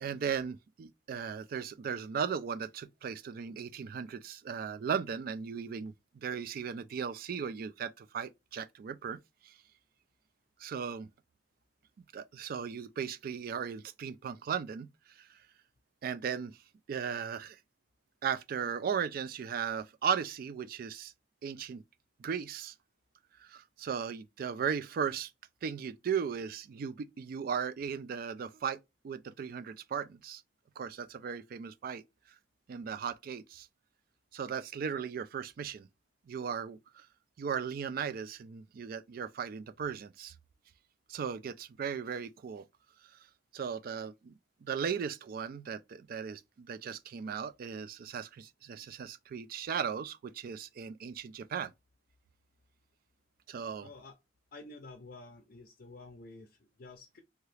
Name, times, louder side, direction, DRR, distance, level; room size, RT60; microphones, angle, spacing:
voice 1, 0.0-9.2 9.4-9.5 10.6-11.1 12.1-14.9 15.2-15.4 16.0-16.6 16.9-17.6 18.2-21.1 21.4-21.8 22.2-22.7 23.4-25.3 25.6-28.8 29.0-30.4 30.8-32.0 32.7-33.7 34.3-35.9 36.3-37.1 37.4-40.3 41.1-42.6 43.5-51.7 53.5-53.9, right 7 dB, 55° right, 0.3 m, -37 dB
voice 2, 53.8-54.2 54.5-57.2, left 2 dB, 55° left, 0.5 m, -50 dB
2.9 x 2.3 x 3.1 m
head